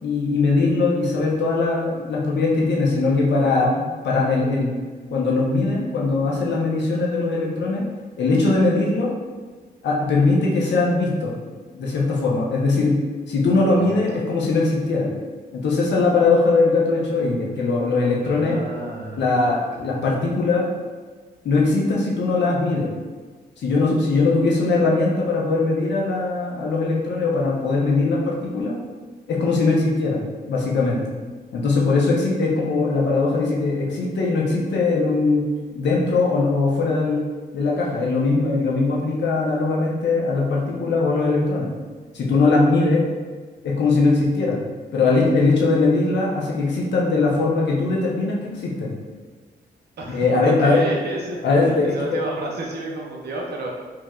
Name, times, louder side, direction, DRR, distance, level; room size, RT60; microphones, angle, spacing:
voice 1, 0.0-4.7 5.1-7.9 8.2-9.1 9.8-11.4 11.7-13.0 13.3-15.1 15.5-18.6 19.2-20.7 21.4-22.9 23.6-28.8 29.3-31.0 31.5-37.2 37.5-41.7 42.1-43.0 43.6-44.6 44.9-48.9 50.1-50.8 51.4-51.9, left 3 dB, 80° left, -3 dB, 0.8 m, -20 dB
voice 2, 13.7-14.2 18.2-20.1 50.0-53.7, right 2 dB, 65° right, -2 dB, 0.8 m, -32 dB
4.6 x 2.7 x 2.4 m, 1.4 s
cardioid pair, 110°, 18 cm